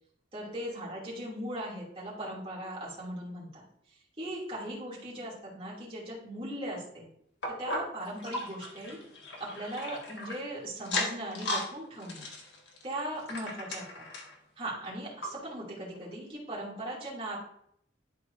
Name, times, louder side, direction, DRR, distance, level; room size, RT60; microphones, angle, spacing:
voice 1, 0.3-3.6 4.2-7.1 7.6-9.0 9.4-12.3 12.8-14.0 14.6-17.4, right 1 dB, 30° right, -7 dB, 2.6 m, -38 dB
sound 1, 7.4-10.4 10.8-11.7 12.0-14.4 14.8-14.9 15.2-15.3 16.0-16.1, left 2 dB, 65° left, 1.5 m, -36 dB
11.5 x 4.7 x 2.6 m, 0.72 s
head